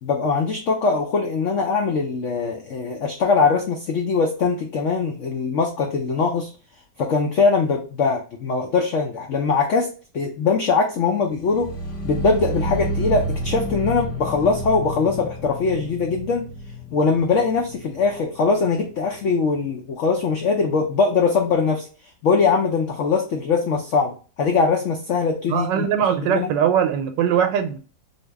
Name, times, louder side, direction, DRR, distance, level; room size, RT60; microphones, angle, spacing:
voice 1, 0.0-6.5 7.0-11.7 12.0-16.4 16.9-21.9 22.2-25.9 26.2-26.5, left 4 dB, 85° left, 0.6 m, -21 dB
sound 1, 11.4-18.5 18.7-19.2 19.5-19.6, equal, 35° left, 1.0 m, -30 dB
voice 2, 25.5-27.8, right 8 dB, 85° right, 1.3 m, -21 dB
2.8 x 2.7 x 3.2 m
omnidirectional pair, 1.9 m